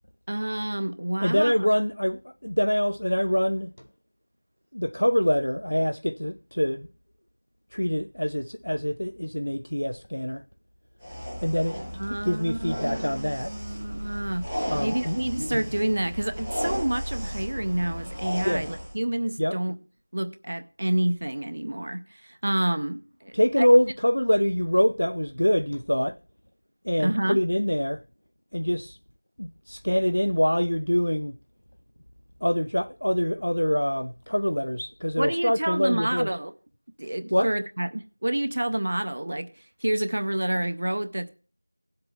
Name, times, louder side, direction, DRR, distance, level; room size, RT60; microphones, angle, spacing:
voice 1, 0.3-1.7 12.0-19.8 20.1-23.7 27.0-27.4 35.2-36.5 37.0-41.3, right 1 dB, 20° right, 0.5 m, -29 dB
voice 2, 1.2-3.7 4.7-6.9 7.7-10.4 11.4-11.8 12.1-13.5 14.7-15.2 18.4-18.6 19.4-19.6 23.3-26.2 26.8-28.0 28.5-29.0 29.4-31.3 32.4-36.3 37.3-37.5, equal, 55° left, 0.4 m, -25 dB
sound 1, 11.0-18.9, equal, ahead, 1.0 m, -34 dB
17.5 x 7.8 x 3.2 m
figure-of-eight pair, 180°, 0 cm